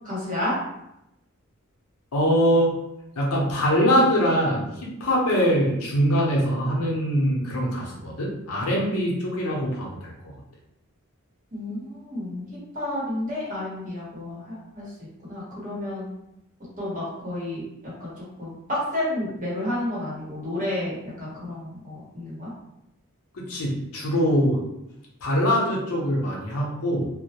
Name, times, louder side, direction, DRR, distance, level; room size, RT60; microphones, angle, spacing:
voice 1, 0.0-0.5 11.5-12.4 12.7-14.8 15.2-16.1 16.8-18.1 18.4-22.5, left 1 dB, 35° right, -7 dB, 1.0 m, -31 dB
voice 2, 2.1-2.7 3.2-4.6 5.0-10.1 23.3-24.6 25.2-27.1, equal, 75° left, -3 dB, 0.7 m, -23 dB
2.2 x 2.0 x 2.8 m, 0.86 s
head